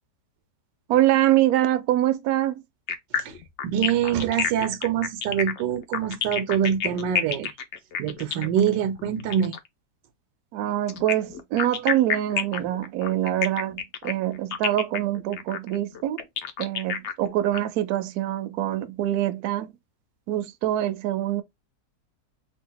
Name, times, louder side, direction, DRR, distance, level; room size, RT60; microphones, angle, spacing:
voice 1, 0.9-2.6 10.5-16.2 16.6-19.7 20.3-21.4, right 13 dB, 70° right, 1.0 m, -24 dB
sound 1, 2.9-9.7 10.9-17.6, left 8 dB, 75° left, 0.6 m, -29 dB
voice 2, 3.6-7.5 8.0-9.5 12.6-12.7, right 9 dB, 85° right, 1.3 m, -25 dB
2.8 x 2.4 x 3.8 m
omnidirectional pair, 1.8 m